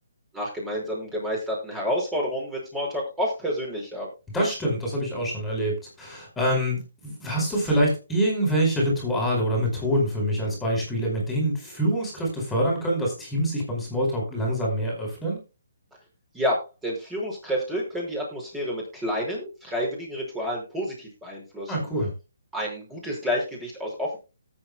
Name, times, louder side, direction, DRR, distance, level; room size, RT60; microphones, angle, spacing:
voice 1, 0.3-4.1 16.3-21.9 22.5-24.2, equal, 10° right, -1 dB, 5.6 m, -29 dB
voice 2, 4.3-15.4 21.7-22.1, equal, 5° left, -2 dB, 4.9 m, -25 dB
18.0 x 8.6 x 2.3 m, 0.29 s
hypercardioid pair, 160°, 0 cm